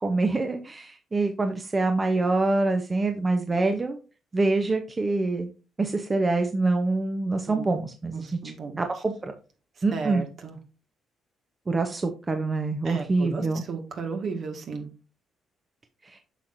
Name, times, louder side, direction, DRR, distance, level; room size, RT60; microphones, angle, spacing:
voice 1, 0.0-4.0 4.3-5.5 5.8-8.4 8.8-9.3 9.8-10.2 11.7-13.6 16.0-16.2, right 3 dB, 25° right, 5 dB, 0.8 m, -25 dB
voice 2, 8.1-8.8 9.9-10.6 12.9-14.9, right 4 dB, 60° right, 4 dB, 1.7 m, -34 dB
8.3 x 5.9 x 2.6 m, 0.33 s
cardioid pair, 90°, 0 cm